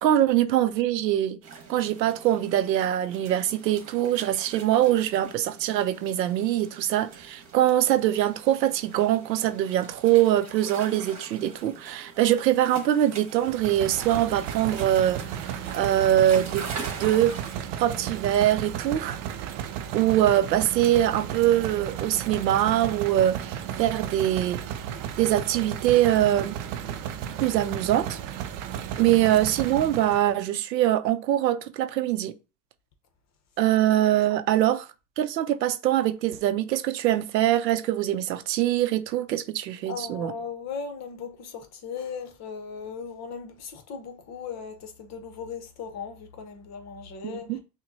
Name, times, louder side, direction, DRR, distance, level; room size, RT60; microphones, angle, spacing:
voice 1, 0.0-1.4 1.7-15.4 15.7-16.7 17.0-17.3 17.7-19.2 19.9-24.6 25.2-26.6 27.4-28.2 29.0-32.3 33.6-34.9 35.2-40.3 47.2-47.6, right 12 dB, 90° right, 0.6 m, -23 dB
sound 1, 1.4-17.6, right 5 dB, 35° right, 1.4 m, -43 dB
sound 2, 13.4-30.3, right 9 dB, 50° right, 0.6 m, -34 dB
voice 2, 39.9-47.6, left 6 dB, 35° left, 0.8 m, -37 dB
5.9 x 2.2 x 2.7 m
hypercardioid pair, 100°, 49 cm